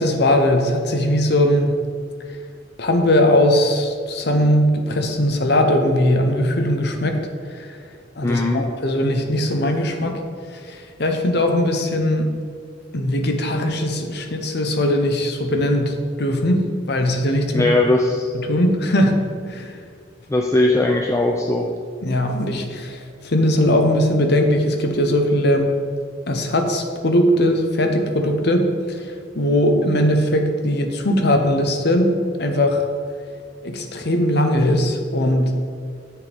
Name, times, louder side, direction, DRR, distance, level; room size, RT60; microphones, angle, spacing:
voice 1, 0.0-1.7 2.8-7.2 7.5-7.8 8.2-10.2 10.5-12.3 12.9-17.7 18.3-19.8 22.0-25.7 26.3-32.1 32.4-32.8 33.6-35.7, left 1 dB, 60° left, 5 dB, 0.9 m, -20 dB
voice 2, 8.2-8.6 17.5-18.3 20.3-21.7, left 2 dB, 15° left, 1 dB, 0.5 m, -19 dB
10.0 x 7.5 x 3.5 m, 2.1 s
head